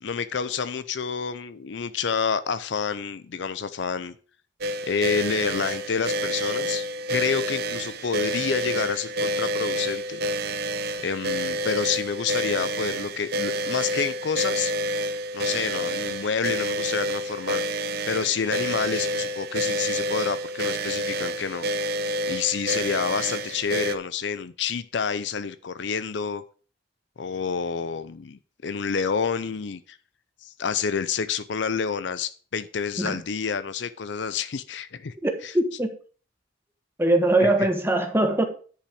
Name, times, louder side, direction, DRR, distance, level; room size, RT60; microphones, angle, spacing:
voice 1, 0.0-4.1 4.8-10.2 11.0-14.7 15.3-21.6 22.3-26.4 27.2-30.0 30.4-35.1 35.4-35.5 37.4-37.5, left 6 dB, 65° left, 13 dB, 0.5 m, -28 dB
sound 1, 4.6-24.0, equal, 55° right, 0.7 m, -28 dB
voice 2, 35.2-35.9 37.0-38.4, right 1 dB, 10° right, 4 dB, 1.3 m, -22 dB
10.0 x 5.6 x 4.9 m, 0.41 s
head